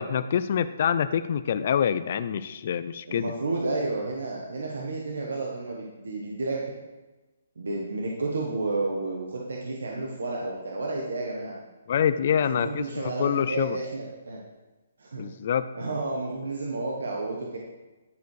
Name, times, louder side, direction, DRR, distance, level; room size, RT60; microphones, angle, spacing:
voice 1, 0.0-3.3 11.9-13.8 15.2-15.7, left 8 dB, 45° left, 12 dB, 0.3 m, -26 dB
voice 2, 3.1-6.7 7.6-11.6 12.5-14.4 15.0-15.2 15.7-17.6, right 2 dB, 90° right, -2 dB, 1.3 m, -31 dB
10.5 x 4.7 x 4.8 m, 1.2 s
hypercardioid pair, 165°, 0 cm